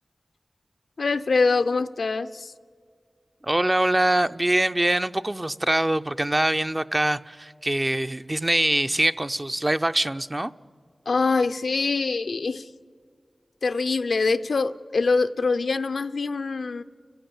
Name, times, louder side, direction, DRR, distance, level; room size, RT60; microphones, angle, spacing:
voice 1, 1.0-2.5 11.1-12.7 13.6-16.8, left 4 dB, 85° left, 0.5 m, -24 dB
voice 2, 3.4-10.5, right 1 dB, 25° right, 0.5 m, -23 dB
30.0 x 14.5 x 7.1 m
wide cardioid pair, 50°, 0 cm